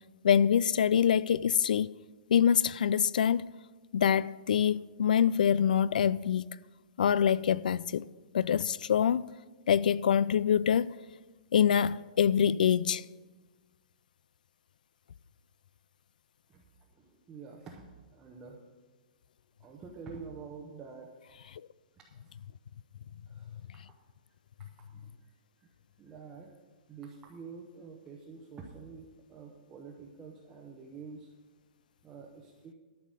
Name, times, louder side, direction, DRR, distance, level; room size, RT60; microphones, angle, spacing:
voice 1, 0.2-1.9 2.3-3.5 3.9-6.6 7.0-8.1 8.3-9.2 9.7-10.9 11.5-13.0, left 8 dB, 75° left, 0.4 m, -25 dB
voice 2, 16.9-18.6 19.6-21.1 22.2-22.4 23.3-23.8 24.6-25.3 25.6-25.7 26.0-26.5 26.9-31.3 32.0-32.7, right 5 dB, 10° right, 0.7 m, -48 dB
12.5 x 5.7 x 7.6 m
hypercardioid pair, 175°, 4 cm